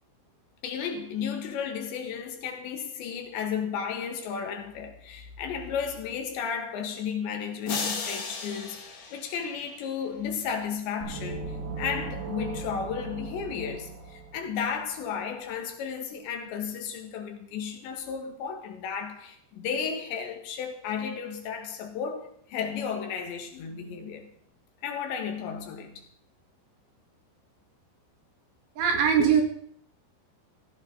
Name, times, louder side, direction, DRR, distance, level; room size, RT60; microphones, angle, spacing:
voice 1, 0.6-24.3 24.8-26.0, left 7 dB, 75° left, 4.0 m, -33 dB
sound 1, 7.7-10.0, left 4 dB, 45° left, 2.9 m, -35 dB
sound 2, 11.0-14.8, right 3 dB, 90° right, 7.3 m, -37 dB
voice 2, 28.8-29.4, right 7 dB, 70° right, 4.4 m, -21 dB
17.0 x 15.5 x 4.0 m
omnidirectional pair, 5.2 m